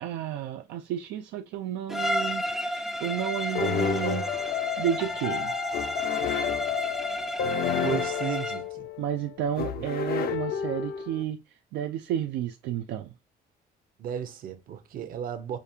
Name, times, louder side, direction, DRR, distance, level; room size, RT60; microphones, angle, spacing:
voice 1, 0.0-4.3 4.8-5.5 9.0-11.4 11.7-13.1, right 10 dB, 80° right, 0.4 m, -31 dB
Bowed string instrument, 1.9-8.7, equal, ahead, 0.3 m, -32 dB
sound 1, 3.6-11.2, left 9 dB, 65° left, 0.6 m, -31 dB
voice 2, 7.8-8.9 14.0-15.6, right 9 dB, 60° right, 0.8 m, -34 dB
5.0 x 2.4 x 2.7 m
cardioid pair, 110°, 17 cm